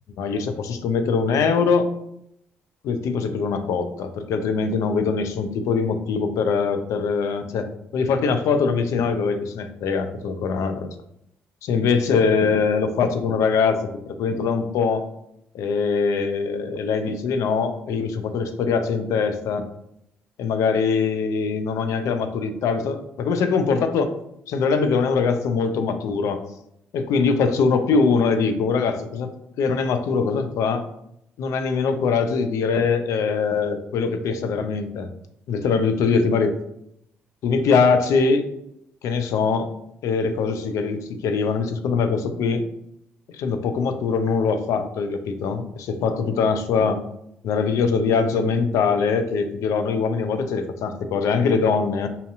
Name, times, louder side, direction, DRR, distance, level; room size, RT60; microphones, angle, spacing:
voice 1, 0.2-1.9 2.8-10.9 11.6-15.1 15.5-19.7 20.4-24.1 24.5-26.4 26.9-29.3 29.6-30.8 31.4-35.1 35.5-36.6 37.4-38.5 39.0-39.7 40.0-42.6 43.3-47.0 47.4-52.1, left 5 dB, 65° left, 8 dB, 0.5 m, -22 dB
5.5 x 2.7 x 2.5 m, 0.76 s
hypercardioid pair, 45°, 6 cm